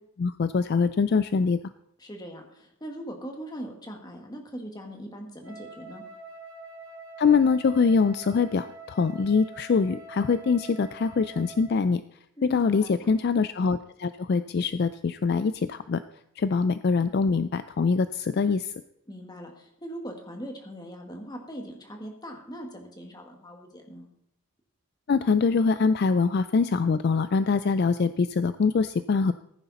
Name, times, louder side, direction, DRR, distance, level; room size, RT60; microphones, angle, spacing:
voice 1, 0.2-1.6 7.2-12.0 12.4-16.0 16.4-18.7 25.1-29.3, left 5 dB, 45° left, 13 dB, 0.3 m, -24 dB
voice 2, 2.0-6.0 12.4-13.1 19.1-24.1, equal, 20° left, 2 dB, 1.8 m, -40 dB
Wind instrument woodwind instrument, 5.4-11.8, right 2 dB, 75° right, 2.2 m, -45 dB
15.0 x 9.7 x 4.2 m, 0.78 s
head